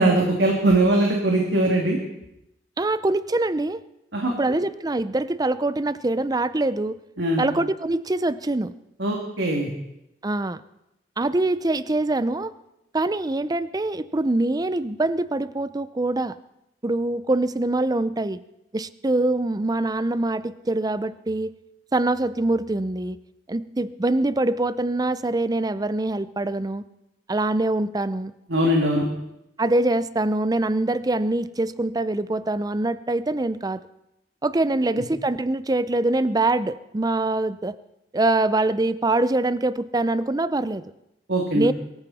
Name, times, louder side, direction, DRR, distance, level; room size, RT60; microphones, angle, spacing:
voice 1, 0.0-2.0 4.1-4.3 7.2-7.4 9.0-9.7 28.5-29.1 41.3-41.7, right 1 dB, 70° right, 0 dB, 2.6 m, -21 dB
voice 2, 2.8-3.8 4.4-7.0 7.4-8.7 10.2-10.6 11.2-12.5 12.9-16.4 16.8-18.4 18.7-21.5 21.9-23.2 23.5-26.8 27.3-28.3 29.6-33.8 34.4-37.8 38.1-40.8 41.5-41.7, right 2 dB, 20° right, 15 dB, 0.5 m, -24 dB
23.0 x 14.5 x 4.2 m, 0.86 s
head